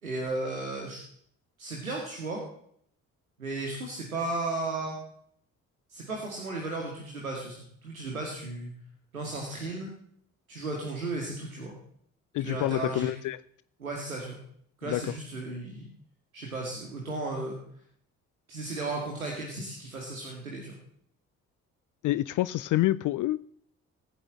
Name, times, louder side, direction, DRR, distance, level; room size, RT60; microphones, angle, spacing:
voice 1, 0.0-1.0 1.6-2.4 3.4-5.0 5.9-8.7 9.1-9.9 10.5-11.8 12.4-13.1 13.8-14.4 14.8-15.9 16.3-17.6 18.5-20.8, right 2 dB, 85° right, 0 dB, 2.3 m, -35 dB
voice 2, 12.3-13.4 14.8-15.0 22.0-23.5, left 16 dB, 50° left, 17 dB, 0.6 m, -27 dB
18.5 x 9.7 x 7.6 m, 0.67 s
figure-of-eight pair, 40°, 41 cm